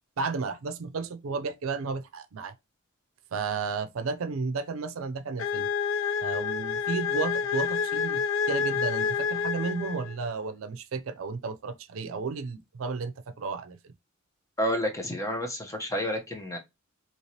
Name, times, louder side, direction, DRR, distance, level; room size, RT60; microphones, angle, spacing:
voice 1, 0.2-2.5 3.3-5.7 6.2-13.9, right 4 dB, 85° right, 0.5 m, -33 dB
sound 1, 5.4-10.3, left 6 dB, 70° left, 0.4 m, -28 dB
voice 2, 14.6-16.6, equal, 15° left, 0.8 m, -30 dB
3.2 x 2.9 x 2.8 m
head